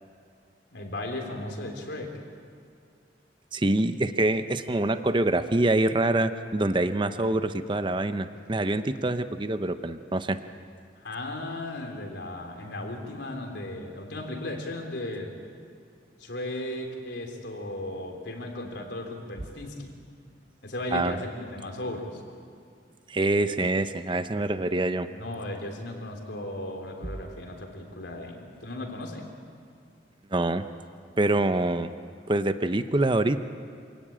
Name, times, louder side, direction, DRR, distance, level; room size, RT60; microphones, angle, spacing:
voice 1, 0.7-2.1 11.0-15.4 16.2-20.0 20.6-22.2 25.1-29.3, left 1 dB, 70° left, 2 dB, 3.6 m, -36 dB
voice 2, 3.5-10.4 20.9-21.2 23.1-25.1 30.3-30.6 31.2-31.9 32.3-33.4, right 2 dB, 25° right, 10 dB, 0.7 m, -25 dB
27.0 x 17.5 x 8.9 m, 2.2 s
head